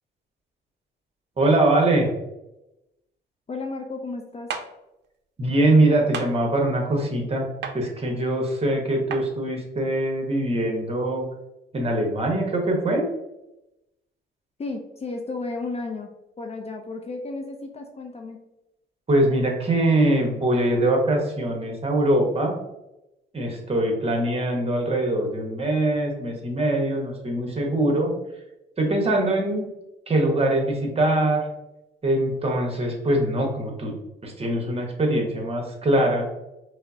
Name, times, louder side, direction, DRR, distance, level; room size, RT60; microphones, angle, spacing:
voice 1, 1.4-2.1 5.4-7.5 7.7-11.2 11.7-13.1 19.1-22.6 23.3-28.1 28.8-29.7 30.1-31.5 32.0-33.9 34.2-36.3, right 1 dB, 30° right, 1 dB, 1.0 m, -22 dB
voice 2, 3.5-4.5 14.6-16.1 16.4-18.4, left 3 dB, 30° left, 3 dB, 0.4 m, -33 dB
sound 1, 4.5-4.7 6.1-6.3 7.6-7.8 9.1-9.2, right 6 dB, 60° right, 0.5 m, -30 dB
5.0 x 2.0 x 2.6 m, 0.92 s
cardioid pair, 90°, 20 cm